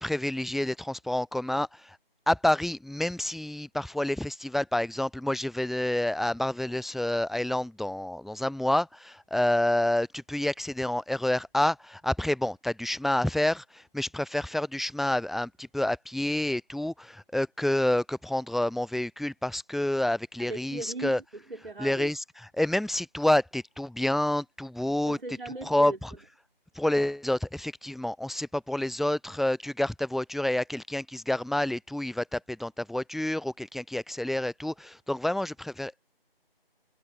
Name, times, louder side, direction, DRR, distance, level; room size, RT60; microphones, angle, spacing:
voice 1, 0.0-2.0 2.3-21.2 21.8-22.2 22.5-25.2 25.6-26.1 26.8-36.1, left 1 dB, ahead, 0.3 m, -28 dB
voice 2, 20.4-22.1 25.0-26.0, right 2 dB, 65° right, 5.0 m, -38 dB
figure-of-eight pair, 170°, 30 cm